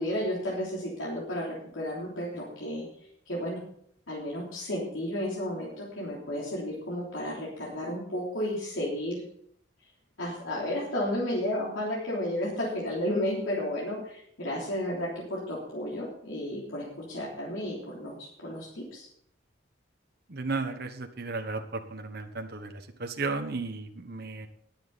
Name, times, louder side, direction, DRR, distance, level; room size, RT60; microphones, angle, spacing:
voice 1, 0.0-2.9 3.3-3.6 4.1-9.2 10.2-19.1, left 1 dB, 85° left, -5 dB, 3.4 m, -32 dB
voice 2, 20.3-24.5, right 3 dB, 50° right, 5 dB, 1.2 m, -34 dB
20.0 x 7.3 x 4.1 m, 0.67 s
head